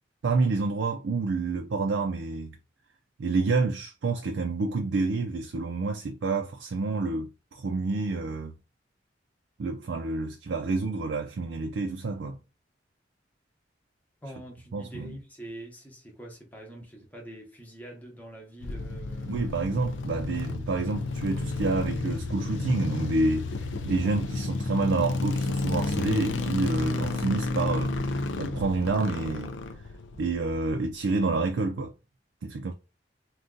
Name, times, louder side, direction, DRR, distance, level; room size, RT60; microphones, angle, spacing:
voice 1, 0.2-2.6 3.2-8.5 9.6-12.4 14.7-15.1 19.3-23.5 23.8-29.5 30.2-31.9 32.4-32.7, right 3 dB, 80° right, 0.4 m, -28 dB
voice 2, 14.2-19.4, right 1 dB, 10° left, 0.7 m, -44 dB
sound 1, 18.6-30.9, left 3 dB, 85° left, 0.4 m, -31 dB
2.6 x 2.3 x 3.7 m
head